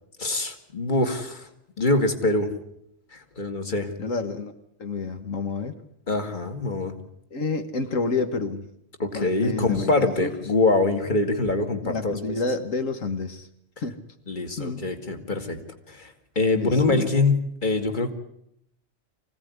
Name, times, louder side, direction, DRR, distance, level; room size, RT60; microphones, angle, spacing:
voice 1, 0.2-1.5 1.8-2.5 3.1-3.9 6.1-6.9 9.0-12.2 14.3-15.6 15.9-18.1, left 2 dB, 40° left, 6 dB, 2.4 m, -24 dB
voice 2, 4.0-4.5 4.8-5.8 7.3-8.7 9.1-10.3 11.8-13.5 13.8-14.0 14.6-14.8 16.5-17.1, left 4 dB, 85° left, 8 dB, 2.0 m, -29 dB
25.0 x 17.0 x 9.6 m, 0.76 s
omnidirectional pair, 1.3 m